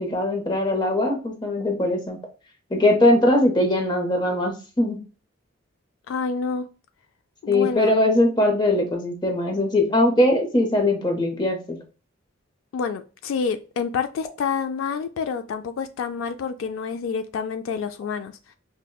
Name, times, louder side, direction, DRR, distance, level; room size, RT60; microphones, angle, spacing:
voice 1, 0.0-2.2 2.7-5.0 7.5-11.8, left 1 dB, 20° left, 0.7 m, -21 dB
voice 2, 6.1-6.7 7.4-7.9 12.7-18.6, left 5 dB, 75° left, 0.3 m, -28 dB
5.1 x 2.1 x 2.3 m
head